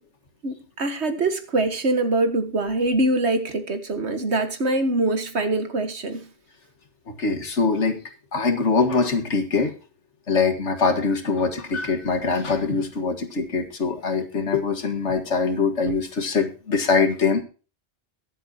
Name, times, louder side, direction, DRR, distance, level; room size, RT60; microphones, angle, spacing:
voice 1, 0.4-6.3, right 2 dB, 70° right, 8 dB, 1.8 m, -24 dB
voice 2, 7.1-8.0 8.3-9.7 10.3-17.4, left 4 dB, 80° left, 7 dB, 2.0 m, -23 dB
22.0 x 7.8 x 2.8 m, 0.36 s
omnidirectional pair, 1.2 m